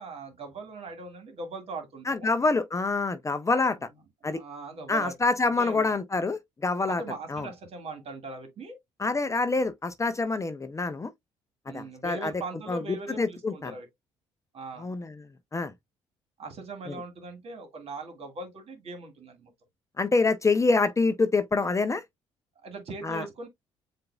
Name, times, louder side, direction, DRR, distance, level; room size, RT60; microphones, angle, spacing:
voice 1, 0.0-2.3 4.2-5.1 5.6-5.9 6.9-8.8 11.7-13.9 14.5-14.9 16.4-19.5 22.6-23.5, right 3 dB, 50° right, 1.8 m, -40 dB
voice 2, 2.1-3.9 4.2-4.4 4.9-7.0 7.3-7.5 9.0-11.1 11.7-12.3 12.7-13.7 14.8-15.2 15.5-15.7 16.9-17.0 20.0-22.0 23.0-23.2, left 3 dB, 20° left, 0.6 m, -26 dB
7.5 x 2.6 x 2.3 m
hypercardioid pair, 50°, 13 cm